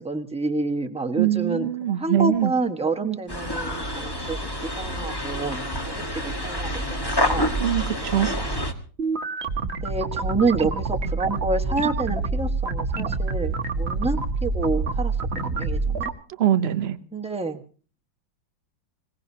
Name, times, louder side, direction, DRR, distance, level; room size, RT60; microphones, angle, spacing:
voice 1, 0.0-7.6 9.8-15.1 15.4-16.1 17.1-17.6, right 3 dB, 5° right, 3 dB, 0.9 m, -28 dB
voice 2, 1.2-2.5 7.6-8.4 16.4-17.0, right 11 dB, 60° right, 10 dB, 0.6 m, -22 dB
sound 1, 3.3-8.7, equal, 15° left, 1.3 m, -28 dB
sound 2, 9.0-16.1, right 3 dB, 40° right, 1.1 m, -27 dB
26.0 x 17.5 x 2.8 m, 0.39 s
omnidirectional pair, 2.3 m